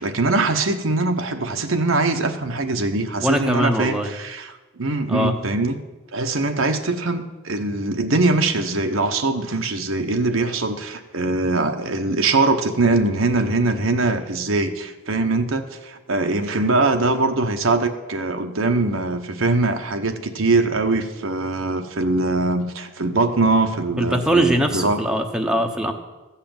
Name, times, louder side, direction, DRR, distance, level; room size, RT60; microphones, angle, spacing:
voice 1, 0.0-5.8 6.1-25.0, right 3 dB, 70° right, 6 dB, 1.0 m, -22 dB
voice 2, 3.2-4.1 5.1-5.3 24.0-25.9, equal, 5° right, 3 dB, 0.9 m, -21 dB
14.5 x 5.8 x 8.8 m, 1.1 s
head